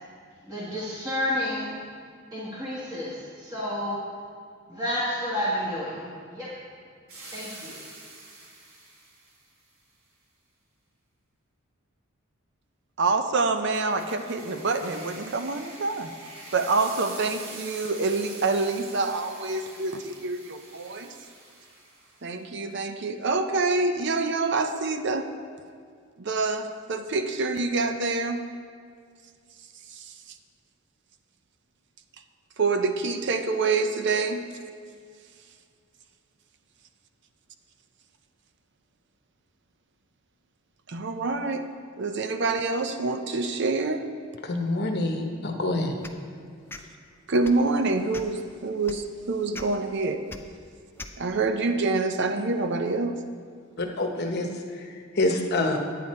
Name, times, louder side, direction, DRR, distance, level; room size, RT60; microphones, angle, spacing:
voice 1, 0.5-1.7 2.3-4.0 4.7-6.0 6.3-6.5 7.3-7.7, left 1 dB, 20° right, -8 dB, 1.5 m, -30 dB
sound 1, 7.1-9.4 13.4-22.3, right 2 dB, 70° right, 1.7 m, -45 dB
voice 2, 13.0-16.1 16.5-21.1 22.2-25.3 26.2-28.5 32.6-34.4 40.9-41.7 42.0-44.1 47.3-50.2 51.2-53.2, right 3 dB, 50° right, 7 dB, 0.6 m, -26 dB
voice 3, 44.4-46.0 53.8-55.8, left 2 dB, 45° left, 2 dB, 1.0 m, -27 dB
sound 2, 46.0-46.2 46.7-46.8 47.4-47.6 48.1-48.4 48.9-49.0 49.5-49.7 50.3-50.4 51.0-51.1, left 3 dB, 10° left, 0.3 m, -39 dB
9.2 x 9.1 x 4.3 m, 2.2 s
head